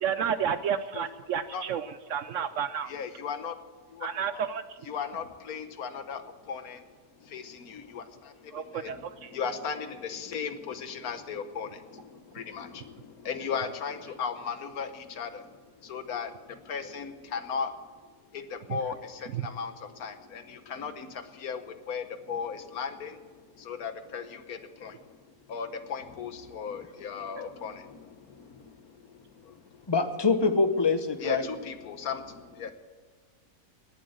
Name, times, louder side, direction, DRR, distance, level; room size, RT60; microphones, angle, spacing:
voice 1, 0.0-2.9 4.0-4.6 8.5-9.3 18.7-18.8 19.3-19.4, right 8 dB, 65° right, 13 dB, 0.8 m, -31 dB
voice 2, 2.8-3.6 3.9-4.5 4.9-17.8 18.3-29.9 31.2-32.7, left 6 dB, 75° left, 10 dB, 1.5 m, -37 dB
voice 3, 29.9-31.5, left 4 dB, 20° left, 9 dB, 0.7 m, -24 dB
18.0 x 7.7 x 7.9 m, 1.5 s
omnidirectional pair, 1.6 m